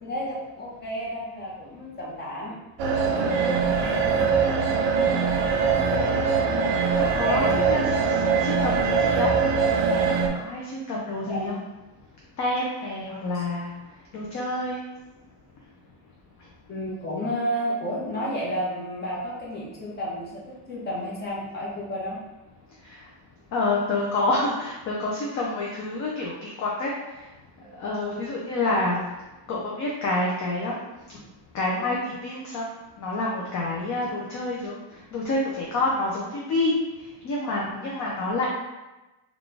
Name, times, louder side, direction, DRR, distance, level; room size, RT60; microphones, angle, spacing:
voice 1, 0.0-2.5 3.0-3.5 3.8-4.3 7.2-7.9 11.3-11.6 13.3-13.4 16.7-20.4 20.7-22.2 27.6-27.8, equal, 20° left, -5 dB, 0.8 m, -32 dB
sound 1, 2.8-10.3, right 5 dB, 65° right, 0.6 m, -22 dB
voice 2, 4.9-5.3 5.7-6.2 7.0-7.8 8.1-9.3 10.3-11.5 12.4-13.7 14.1-14.8 22.9-23.0 23.5-26.9 27.8-29.0 29.5-30.8 31.5-32.6 33.0-34.8 35.1-36.7 37.2-38.5, left 2 dB, 40° left, -3 dB, 0.4 m, -28 dB
3.9 x 2.4 x 3.3 m, 1.1 s
cardioid pair, 180°, 48 cm